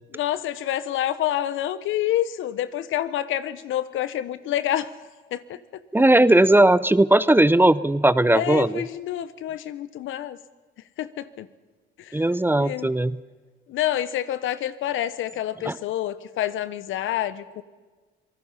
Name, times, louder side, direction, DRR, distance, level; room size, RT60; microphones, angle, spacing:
voice 1, 0.1-5.0 5.3-5.6 8.3-10.4 11.0-11.5 12.0-12.2 12.6-12.9 13.7-17.6, left 12 dB, 85° left, 14 dB, 1.1 m, -28 dB
voice 2, 5.9-8.8 12.1-13.2 15.7-15.8, right 1 dB, 10° right, 17 dB, 0.7 m, -18 dB
27.0 x 19.0 x 5.7 m, 1.4 s
cardioid pair, 90°, 20 cm